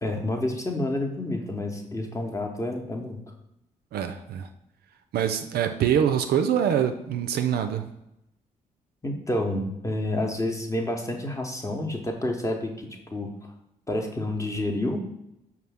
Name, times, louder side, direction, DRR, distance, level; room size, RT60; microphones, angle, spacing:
voice 1, 0.0-3.2 9.0-12.7 13.1-13.3 13.9-15.0, left 1 dB, 15° left, 2 dB, 0.8 m, -29 dB
voice 2, 3.9-4.5 5.1-7.9, right 9 dB, 60° right, 7 dB, 0.4 m, -24 dB
5.4 x 2.3 x 3.3 m, 0.84 s
hypercardioid pair, 40°, 19 cm